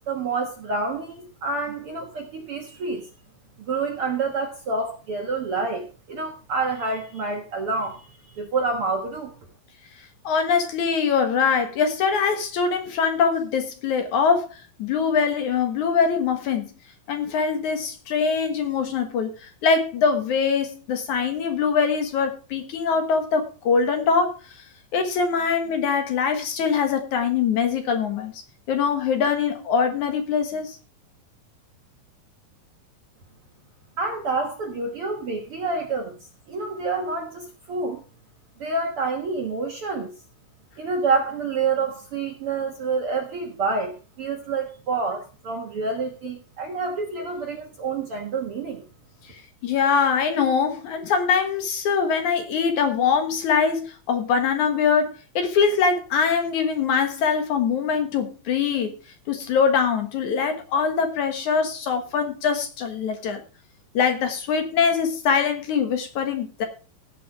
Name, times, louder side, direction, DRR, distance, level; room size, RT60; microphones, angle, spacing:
voice 1, 0.1-3.1 3.7-9.3 34.0-36.2 36.5-38.0 38.6-40.1 40.8-48.9, right 4 dB, 55° right, 3 dB, 1.7 m, -28 dB
voice 2, 10.2-14.5 14.8-16.7 17.1-24.4 24.9-28.3 28.7-30.8 49.6-59.0 59.3-63.4 63.9-66.7, left 6 dB, 65° left, 6 dB, 2.6 m, -23 dB
17.0 x 6.0 x 4.8 m, 0.34 s
omnidirectional pair, 4.1 m